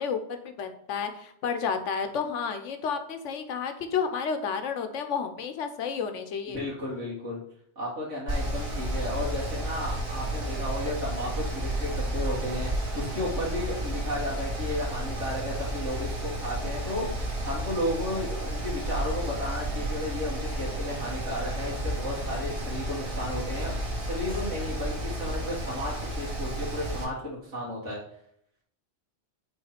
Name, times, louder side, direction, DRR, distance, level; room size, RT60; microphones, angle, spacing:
voice 1, 0.0-6.6, left 6 dB, 85° left, 7 dB, 1.1 m, -31 dB
voice 2, 6.5-7.4 7.8-28.0, left 1 dB, 80° right, -7 dB, 2.2 m, -33 dB
Mechanical fan, 8.3-27.0, right 1 dB, 55° right, 1.7 m, -32 dB
5.5 x 3.7 x 5.7 m, 0.70 s
omnidirectional pair, 1.2 m